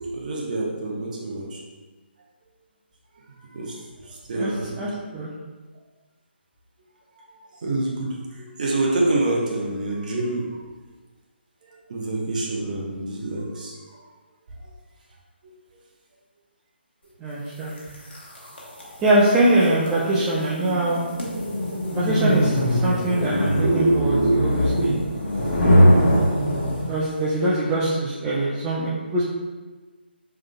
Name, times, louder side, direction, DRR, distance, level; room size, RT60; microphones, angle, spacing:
voice 1, 0.0-1.6 3.4-3.8 4.0-4.8 7.2-7.3 7.6-10.5 11.7-14.0 23.6-24.4 24.8-24.9, right 2 dB, 45° right, -2 dB, 0.9 m, -26 dB
voice 2, 4.8-5.3 17.2-17.7 19.0-21.1 21.9-24.9 26.9-29.2, right 1 dB, 10° right, -8 dB, 0.5 m, -23 dB
sound 1, 17.8-27.1, equal, 70° left, 1.3 m, -22 dB
5.0 x 3.6 x 2.2 m, 1.2 s
figure-of-eight pair, 150°, 6 cm